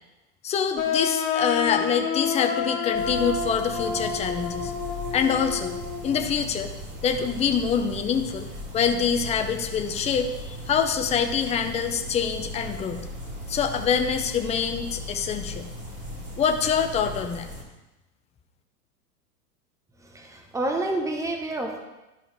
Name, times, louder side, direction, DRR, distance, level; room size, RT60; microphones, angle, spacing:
voice 1, 0.4-4.7 5.1-5.8 6.0-6.7 7.0-8.5 8.7-13.1 13.5-15.7 16.4-17.5, left 7 dB, 15° left, 6 dB, 0.6 m, -25 dB
sound 1, 0.8-6.3, left 6 dB, 45° left, 1.7 m, -29 dB
sound 2, 2.9-17.6, left 1 dB, 25° right, 2.5 m, -38 dB
voice 2, 20.1-21.8, right 2 dB, 5° right, 2 dB, 1.1 m, -28 dB
12.0 x 5.3 x 3.5 m, 1.0 s
hypercardioid pair, 100°, 47 cm